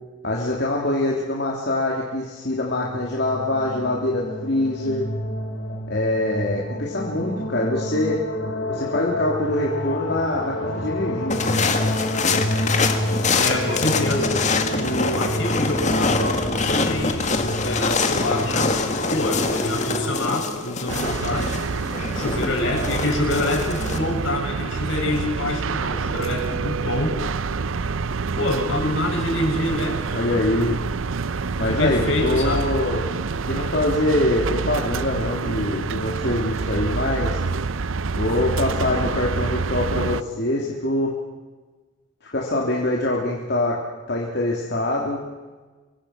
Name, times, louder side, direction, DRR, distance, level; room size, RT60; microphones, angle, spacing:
voice 1, 0.2-5.0 5.9-8.2 8.7-11.5 30.1-30.8 31.6-37.4 38.1-41.1 42.3-43.8 44.1-45.2, left 1 dB, 55° left, -3 dB, 3.3 m, -24 dB
sound 1, 2.6-20.1, left 1 dB, 90° left, 6.2 m, -28 dB
sound 2, 11.3-24.0, left 4 dB, 35° left, 2.0 m, -25 dB
voice 2, 13.3-14.4 14.8-17.3 17.6-18.7 19.1-21.6 22.1-27.2 28.4-30.4 31.6-32.7, left 1 dB, 70° left, 1 dB, 6.9 m, -26 dB
sound 3, 20.9-40.2, right 4 dB, 75° right, 0.6 m, -27 dB
26.5 x 23.5 x 6.0 m, 1.3 s
head